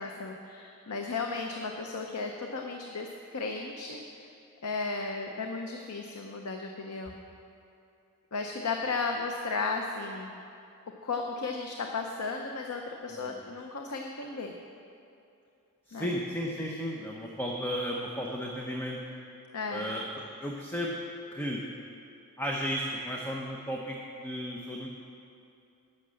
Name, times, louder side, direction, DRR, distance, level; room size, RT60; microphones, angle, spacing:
voice 1, 0.0-4.3 4.6-7.2 8.3-10.3 11.0-14.5 15.9-16.1 19.5-20.0, left 4 dB, 80° left, 3 dB, 0.7 m, -35 dB
voice 2, 13.1-13.4 15.9-19.0 19.7-20.0 20.4-21.0 21.3-21.6 22.4-24.0 24.2-24.9, equal, 10° left, -1 dB, 0.7 m, -34 dB
11.5 x 6.5 x 7.6 m, 2.6 s
head